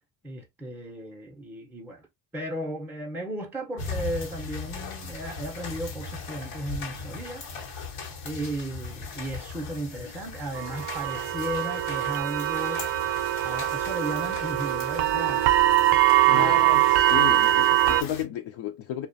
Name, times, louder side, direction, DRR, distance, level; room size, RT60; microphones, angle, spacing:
voice 1, 0.2-2.1 2.3-7.5 8.2-12.9 13.4-15.7 16.2-16.6, right 1 dB, 5° right, 0.5 m, -35 dB
sound 1, 3.8-18.2, left 4 dB, 85° left, 0.9 m, -39 dB
sound 2, 10.6-18.0, right 15 dB, 55° right, 0.5 m, -22 dB
voice 2, 16.3-19.1, left 10 dB, 70° left, 0.5 m, -33 dB
2.3 x 2.1 x 2.5 m
supercardioid pair, 70°, 50 cm